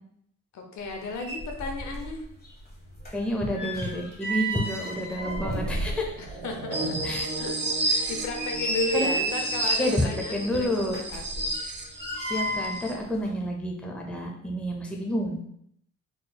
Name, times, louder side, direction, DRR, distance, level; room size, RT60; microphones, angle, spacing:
voice 1, 0.5-2.2 6.2-7.5 7.8-11.5, left 2 dB, 70° left, 3 dB, 0.8 m, -34 dB
Rusty church gate, 0.9-1.0 1.2-2.2 2.4-6.4 6.8-6.9 7.4-7.5 8.1-10.0 10.9-12.9 13.1-13.3, right 1 dB, 30° left, 1.4 m, -32 dB
voice 2, 3.1-6.4 7.0-7.3 8.9-9.1 9.8-11.0 12.3-15.4, equal, 5° left, 0 dB, 0.6 m, -29 dB
sound 1, 4.6-7.4, right 3 dB, 60° right, 0.9 m, -39 dB
sound 2, 6.7-12.9, right 2 dB, 35° right, 0.6 m, -31 dB
4.0 x 3.1 x 2.3 m, 0.71 s
cardioid pair, 90°, 30 cm